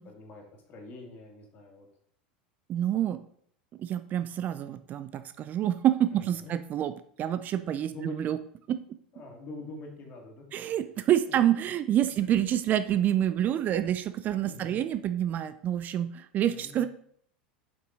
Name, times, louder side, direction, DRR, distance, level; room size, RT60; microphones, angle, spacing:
voice 1, 0.0-1.9 6.1-6.5 7.5-8.2 9.1-10.8 11.2-11.4 12.1-12.3 14.4-14.8 16.4-16.9, left 2 dB, 35° left, 0 dB, 2.3 m, -45 dB
voice 2, 2.7-3.2 3.8-6.9 7.2-8.4 8.7-8.8 10.5-16.9, right 11 dB, 35° right, 12 dB, 0.4 m, -27 dB
7.5 x 5.5 x 3.9 m, 0.64 s
figure-of-eight pair, 80°, 5 cm